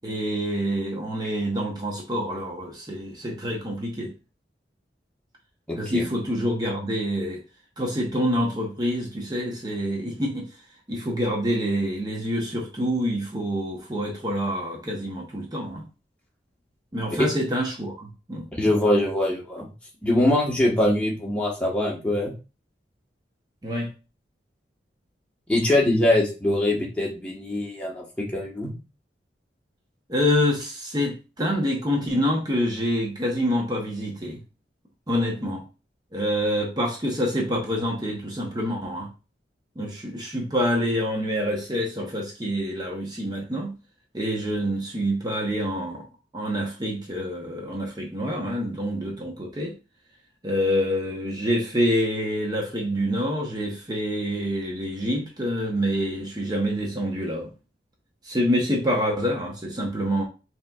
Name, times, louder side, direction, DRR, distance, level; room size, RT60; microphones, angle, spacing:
voice 1, 0.0-4.1 5.7-7.4 7.8-10.5 10.9-15.8 16.9-18.7 23.6-23.9 30.1-34.4 35.1-35.6 36.1-39.1 39.8-43.8 44.1-46.1 46.3-49.7 50.4-57.5 58.2-60.3, equal, 20° right, 0.7 m, -26 dB
voice 2, 5.7-6.0 18.5-19.7 20.0-22.3 25.5-28.8, left 1 dB, 5° left, 1.0 m, -23 dB
5.6 x 2.9 x 2.3 m
head